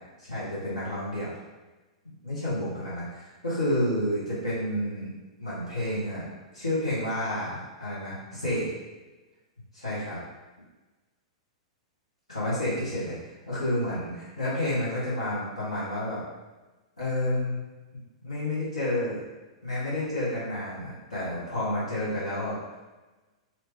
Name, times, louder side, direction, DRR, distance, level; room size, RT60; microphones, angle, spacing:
voice 1, 0.2-1.3 2.2-5.1 5.4-6.2 6.5-8.6 9.7-10.2 12.3-13.2 13.5-16.2 17.0-17.6 18.2-19.2 19.6-22.8, left 1 dB, 85° left, -10 dB, 1.5 m, -30 dB
2.9 x 2.9 x 3.6 m, 1.2 s
figure-of-eight pair, 100°, 3 cm